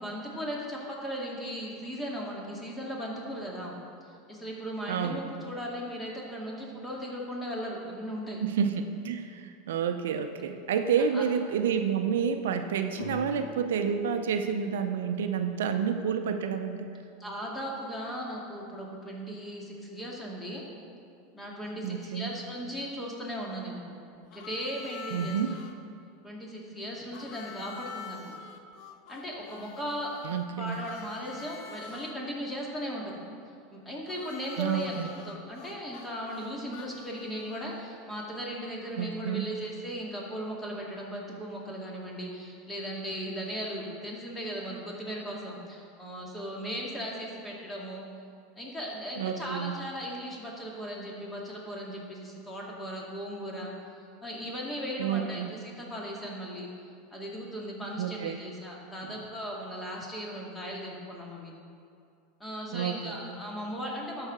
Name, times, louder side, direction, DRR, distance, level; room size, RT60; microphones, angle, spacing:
voice 1, 0.0-3.7 4.3-8.4 11.1-11.3 17.2-20.6 21.3-23.8 24.3-25.4 26.2-28.4 29.1-30.3 30.6-33.2 33.7-48.1 48.6-53.7 54.2-56.7 57.1-61.5 62.4-64.3, equal, 15° left, -3 dB, 2.2 m, -37 dB
voice 2, 4.9-5.2 8.4-16.9 21.8-22.3 25.1-25.5 30.2-30.8 34.6-35.1 39.0-39.4 49.2-49.7 55.0-55.5 58.0-58.4 62.7-63.1, right 7 dB, 80° right, 7 dB, 0.5 m, -29 dB
sound 1, 12.9-16.6, left 5 dB, 75° left, 1.1 m, -46 dB
Harmonica, 24.3-25.7 27.1-32.1 34.1-38.0, left 6 dB, 55° left, 0.7 m, -46 dB
12.5 x 4.8 x 4.9 m, 2.4 s
hypercardioid pair, 100°, 0 cm